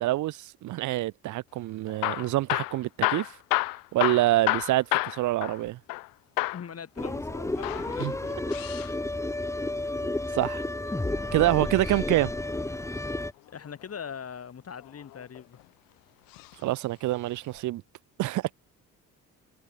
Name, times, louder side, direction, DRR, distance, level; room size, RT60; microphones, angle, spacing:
voice 1, 0.0-3.4 3.9-5.8 8.0-8.1 10.3-10.6 11.3-12.3 16.6-17.8 18.2-18.5, right 16 dB, 60° right, 0.5 m, -26 dB
Hammer / Drill, 1.9-6.1 6.4-6.7 7.5-8.9 10.7-11.9 13.6-14.1 14.8-15.6 16.3-16.6 16.9-17.0 17.6-17.7, left 22 dB, 85° left, 0.6 m, -31 dB
voice 2, 6.5-8.4 11.6-12.0 13.5-15.6, left 7 dB, 45° left, 7.9 m, -42 dB
sound 1, 7.0-13.3, left 2 dB, 10° left, 1.4 m, -31 dB
cardioid pair, 90°, 33 cm